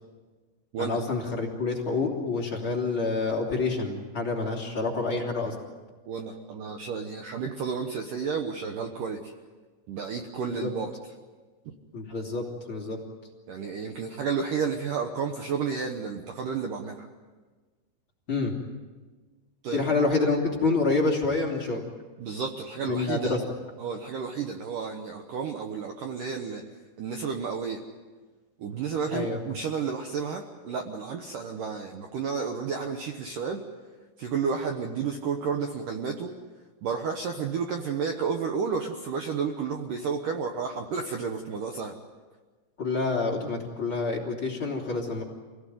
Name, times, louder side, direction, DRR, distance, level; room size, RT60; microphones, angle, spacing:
voice 1, 0.8-5.5 10.6-10.7 11.9-13.0 18.3-18.5 19.7-21.8 22.8-23.4 29.1-29.4 42.8-45.2, left 3 dB, 30° left, -2 dB, 3.0 m, -27 dB
voice 2, 6.1-9.3 9.9-10.9 13.5-17.1 19.6-19.8 22.2-23.4 23.8-26.6 27.0-27.8 28.6-33.6 34.2-36.3 36.8-41.9, right 6 dB, 90° right, 4 dB, 1.8 m, -31 dB
26.0 x 18.0 x 9.3 m, 1.4 s
omnidirectional pair, 5.7 m